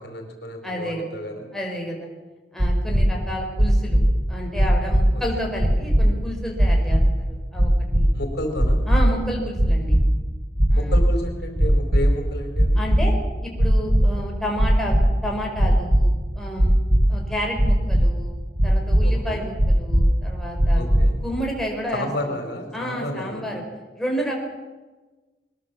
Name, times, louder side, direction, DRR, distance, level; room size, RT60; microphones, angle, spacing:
voice 1, 0.0-1.5 8.1-8.8 10.7-12.8 19.0-19.4 20.7-21.2 21.9-23.5, left 1 dB, 65° left, 4 dB, 4.4 m, -31 dB
voice 2, 0.6-1.1 1.5-2.1 2.5-4.0 4.3-8.1 8.9-10.0 10.7-11.0 12.8-13.1 13.4-16.1 16.3-16.8 17.1-18.4 18.6-20.8 21.2-22.4 22.7-23.6 23.9-24.4, equal, ahead, 0 dB, 4.9 m, -30 dB
sound 1, 2.6-3.0 3.6-4.0 4.6-5.0 5.6-6.0 6.6-7.0 7.6-8.0 8.6-9.0 9.6-10.0 10.6-11.0 11.6-12.0 12.6-13.0 13.6-14.0 14.6-15.0 15.6-16.0 16.6-17.0 17.6-18.0 18.6-19.0 19.6-20.0 20.6-21.0, equal, 45° right, 7.0 m, -18 dB
22.5 x 21.5 x 7.3 m, 1.2 s
head